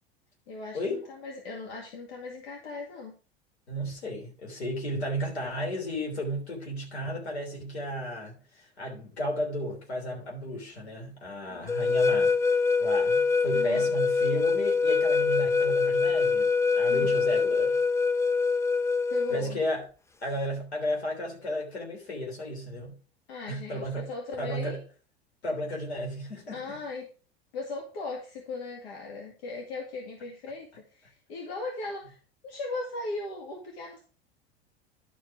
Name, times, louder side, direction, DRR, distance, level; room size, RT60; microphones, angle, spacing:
voice 1, 0.5-3.1 11.5-11.7 13.5-13.9 16.9-17.2 19.1-19.6 23.3-24.8 26.5-27.1 27.5-32.2 32.4-34.0, left 3 dB, 65° left, 2.2 m, -38 dB
voice 2, 3.7-12.4 12.8-16.5 16.8-17.8 19.3-19.8 20.2-22.9 23.5-24.1 24.4-24.8 25.4-26.8, equal, 85° left, 3.3 m, -33 dB
sound 1, 11.7-19.5, left 4 dB, 10° left, 0.5 m, -24 dB
11.5 x 4.7 x 4.6 m
hypercardioid pair, 80°, 32 cm